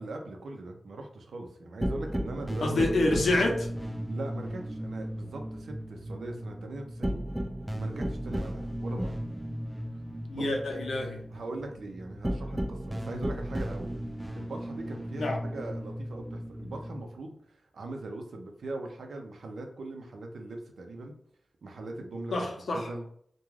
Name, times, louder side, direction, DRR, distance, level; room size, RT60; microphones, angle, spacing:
voice 1, 0.0-3.2 4.1-7.3 7.8-9.2 10.3-10.5 11.3-13.9 14.4-21.1 21.6-22.3 22.7-23.0, right 2 dB, 90° right, 3 dB, 0.5 m, -40 dB
sound 1, 1.8-17.0, equal, 10° right, 0.3 m, -35 dB
voice 2, 2.6-3.7 10.3-11.2 15.2-15.4 22.3-22.9, left 2 dB, 85° left, 1 dB, 0.6 m, -27 dB
2.4 x 2.2 x 3.1 m, 0.64 s
wide cardioid pair, 85°, 0 cm